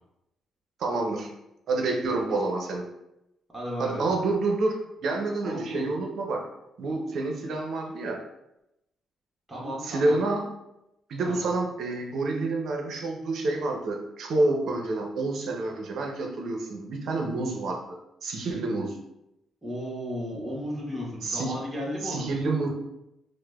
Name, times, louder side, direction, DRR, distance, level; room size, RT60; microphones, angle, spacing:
voice 1, 0.8-1.3 1.7-2.9 3.8-6.4 6.8-8.2 9.8-10.4 11.1-19.0 21.2-21.5 22.0-22.7, right 2 dB, 65° right, 2 dB, 0.6 m, -28 dB
voice 2, 3.5-4.1 5.4-5.9 9.5-10.2 11.2-11.5 19.6-22.3, equal, 15° right, -5 dB, 1.1 m, -34 dB
4.6 x 2.1 x 2.3 m, 0.87 s
cardioid pair, 90°, 0 cm